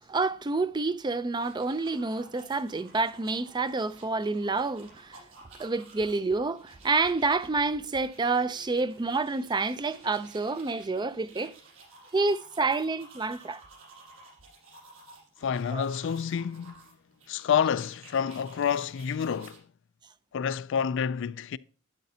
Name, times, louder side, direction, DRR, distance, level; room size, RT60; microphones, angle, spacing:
voice 1, 0.1-5.2 5.6-11.6 12.1-13.6 15.7-15.8, right 3 dB, 20° right, 0.4 m, -28 dB
sound 1, 1.2-19.6, right 3 dB, 75° right, 6.0 m, -54 dB
voice 2, 15.4-16.8 17.3-19.6 20.3-21.6, left 7 dB, 60° left, 0.4 m, -28 dB
12.0 x 9.4 x 2.7 m
head